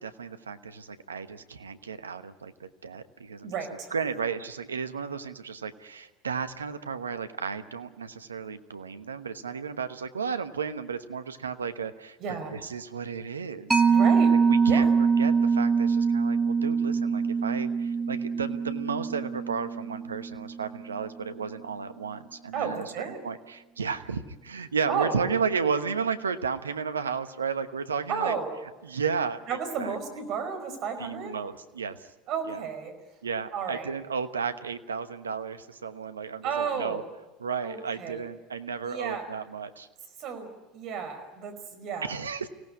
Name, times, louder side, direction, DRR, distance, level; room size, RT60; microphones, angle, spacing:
voice 1, 0.0-12.2 12.5-13.8 14.3-14.9 15.2-28.3 28.8-29.4 29.8-29.9 31.0-32.1 32.5-32.6 33.2-37.0 37.4-39.9 42.0-42.5, right 6 dB, 90° right, 10 dB, 1.1 m, -33 dB
voice 2, 3.4-3.9 12.2-12.5 13.9-14.3 14.7-14.9 22.5-23.2 24.9-25.2 28.1-28.5 29.5-31.4 32.3-32.9 33.5-33.9 36.4-37.0 37.6-38.2 38.9-39.2 40.2-42.1, right 6 dB, 50° right, 8 dB, 4.8 m, -32 dB
Mallet percussion, 13.7-20.8, right 5 dB, 15° right, 1.8 m, -24 dB
24.5 x 17.5 x 9.6 m, 1.2 s
hypercardioid pair, 80°, 0 cm